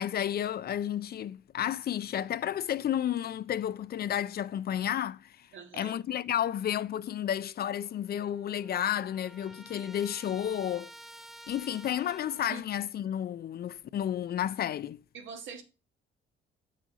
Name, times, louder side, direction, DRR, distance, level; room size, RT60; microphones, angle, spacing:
voice 1, 0.0-5.5 5.7-10.9 11.5-15.0, left 10 dB, 50° left, 0.5 m, -32 dB
voice 2, 5.5-6.0 12.5-12.6 15.1-15.6, right 6 dB, 75° right, 1.6 m, -43 dB
Trumpet, 7.8-7.9 8.2-12.6, right 1 dB, ahead, 0.6 m, -51 dB
7.6 x 6.3 x 4.1 m
cardioid pair, 90°, 20 cm